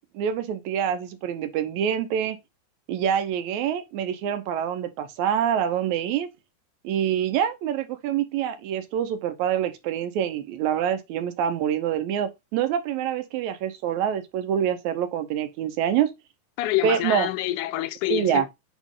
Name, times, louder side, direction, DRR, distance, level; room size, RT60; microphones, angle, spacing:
voice 1, 0.1-2.4 2.9-6.3 6.8-16.1 16.8-17.3 18.1-18.5, right 9 dB, 75° right, 2.0 m, -26 dB
voice 2, 16.6-18.5, left 15 dB, 85° left, 2.1 m, -27 dB
8.2 x 3.1 x 3.7 m
omnidirectional pair, 3.5 m